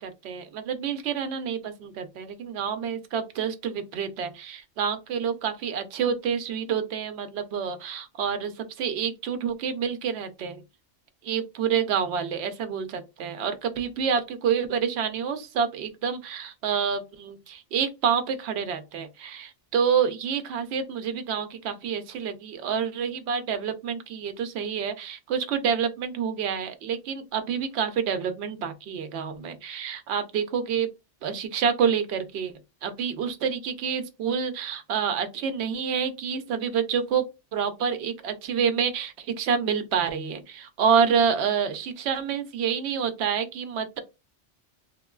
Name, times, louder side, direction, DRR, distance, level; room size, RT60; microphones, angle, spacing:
voice 1, 0.0-10.6 11.2-30.9 31.2-32.5 32.8-37.3 37.5-44.0, right 7 dB, 70° right, 0.8 m, -28 dB
3.6 x 2.2 x 2.3 m
omnidirectional pair, 1.2 m